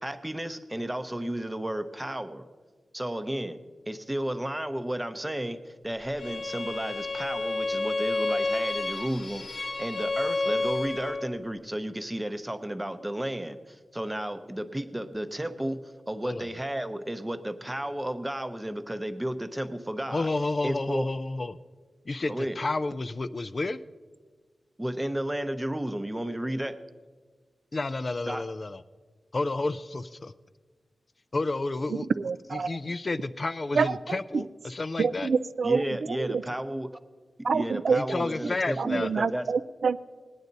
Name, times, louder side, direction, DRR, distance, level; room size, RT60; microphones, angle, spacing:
voice 1, 0.0-2.4 2.9-3.6 3.9-20.3 20.6-21.0 22.3-22.6 24.8-26.8 28.3-28.4 35.6-36.9 37.5-39.5, right 1 dB, 10° right, 10 dB, 0.7 m, -33 dB
Bowed string instrument, 6.2-11.3, left 2 dB, 65° left, 1.0 m, -30 dB
voice 2, 20.1-21.6 22.1-23.8 27.7-28.8 29.3-30.3 31.3-32.1 32.5-35.3 37.9-39.1, left 2 dB, 35° left, 13 dB, 0.4 m, -31 dB
voice 3, 31.9-32.8 33.7-34.4 35.0-36.4 37.4-38.0 38.8-40.0, right 5 dB, 70° right, 13 dB, 0.3 m, -27 dB
18.5 x 9.5 x 4.0 m, 1.4 s
wide cardioid pair, 110°, 0 cm